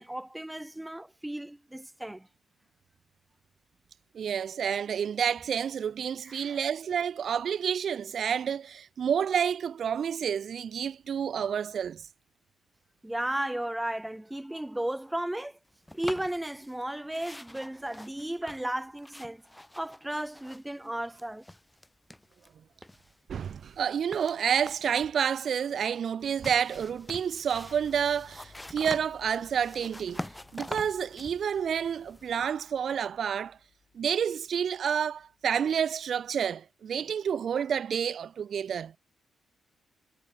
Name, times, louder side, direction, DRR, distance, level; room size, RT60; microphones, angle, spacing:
voice 1, 0.0-2.3 6.2-6.6 13.0-15.6 15.9-19.4 19.8-21.4, right 1 dB, 10° right, 0.8 m, -34 dB
voice 2, 4.1-12.1 23.3-33.6 33.9-38.9, right 8 dB, 65° right, 0.6 m, -29 dB
sound 1, 15.9-16.8 17.1-20.9 21.1-22.5 22.8-25.0 26.2-32.5, left 1 dB, 10° left, 3.9 m, -45 dB
sound 2, 27.5-36.5, left 6 dB, 60° left, 3.9 m, -60 dB
supercardioid pair, 55°, 0 cm